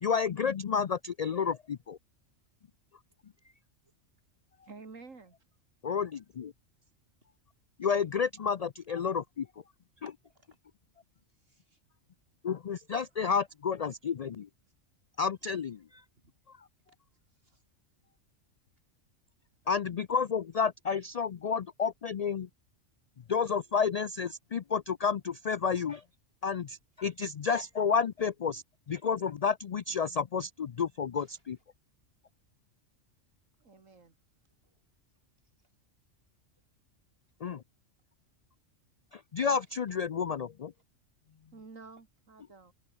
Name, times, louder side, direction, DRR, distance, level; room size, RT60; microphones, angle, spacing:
voice 1, 0.0-2.0 5.8-6.5 7.8-9.5 12.4-14.5 15.2-16.0 19.7-22.5 23.3-26.0 26.4-31.6 37.4-37.6 39.1-40.7, left 6 dB, 70° left, 0.3 m, -31 dB
voice 2, 4.7-5.4 33.6-34.1 41.5-42.7, right 4 dB, 85° right, 3.0 m, -50 dB
voice 3, 10.1-10.6 11.3-11.8 16.2-16.3 17.3-17.6 31.2-31.4 34.6-34.7 35.6-35.7 39.7-39.8, right 1 dB, 50° right, 7.9 m, -64 dB
omnidirectional pair, 1.3 m